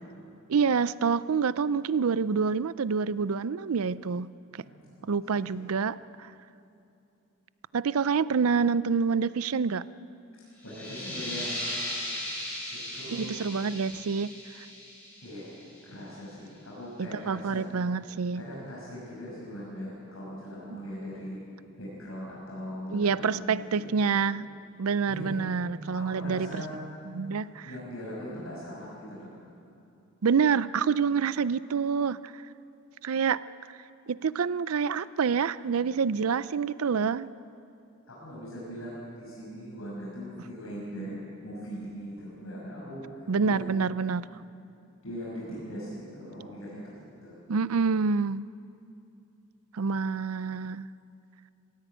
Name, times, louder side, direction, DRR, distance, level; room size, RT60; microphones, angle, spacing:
voice 1, 0.5-4.3 5.1-6.0 7.7-9.9 13.1-14.3 17.0-18.4 22.9-24.5 24.8-26.6 27.1-27.7 30.2-32.2 33.0-33.4 34.1-37.3 43.3-44.3 47.5-48.5 49.7-50.9, right 5 dB, 90° right, 17 dB, 0.5 m, -27 dB
voice 2, 4.5-5.7 10.6-11.5 12.7-13.4 15.2-15.5 15.8-17.7 18.3-21.4 21.8-24.2 25.1-25.4 25.9-26.7 27.6-29.3 38.1-43.7 45.0-47.4, equal, 75° left, -6 dB, 6.5 m, -40 dB
sound 1, 10.6-16.0, left 1 dB, 10° left, 6.7 m, -37 dB
19.0 x 16.5 x 9.1 m, 2.7 s
head